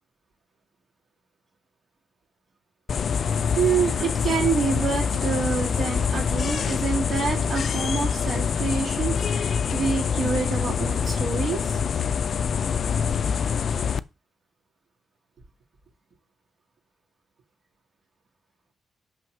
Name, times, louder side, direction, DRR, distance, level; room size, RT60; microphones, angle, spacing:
sound 1, 2.9-14.0, left 6 dB, 50° left, 0.4 m, -25 dB
voice 1, 3.6-11.8, right 5 dB, 55° right, 0 dB, 2.9 m, -27 dB
5.9 x 5.6 x 6.3 m, 0.28 s
cardioid pair, 120°, 0 cm